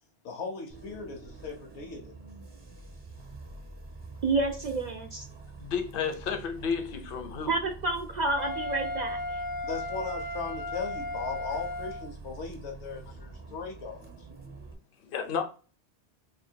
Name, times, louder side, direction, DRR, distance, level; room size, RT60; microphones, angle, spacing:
voice 1, 0.2-2.1 9.6-14.1, left 4 dB, 75° left, 1.1 m, -38 dB
Bus, 0.7-14.7, right 3 dB, 25° right, 0.7 m, -46 dB
voice 2, 4.2-5.2 7.5-9.4, right 3 dB, 55° right, 0.5 m, -29 dB
voice 3, 5.6-7.5 15.0-15.4, left 6 dB, 60° left, 0.8 m, -32 dB
Wind instrument woodwind instrument, 8.4-12.1, left 2 dB, 35° left, 0.3 m, -35 dB
2.7 x 2.7 x 4.3 m
omnidirectional pair, 1.1 m